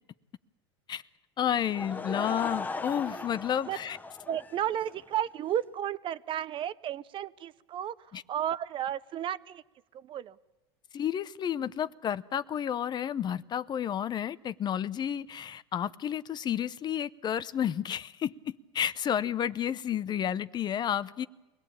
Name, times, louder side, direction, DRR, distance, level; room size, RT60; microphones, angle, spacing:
voice 1, 1.4-4.0 8.1-8.2 10.9-21.3, left 9 dB, 35° left, 17 dB, 0.7 m, -31 dB
Laughter / Crowd, 1.5-5.1, left 3 dB, 15° left, 1.1 m, -38 dB
voice 2, 4.3-9.6 9.9-10.4, right 11 dB, 40° right, 17 dB, 0.8 m, -33 dB
23.5 x 17.5 x 8.7 m, 1.1 s
supercardioid pair, 105°, 14 cm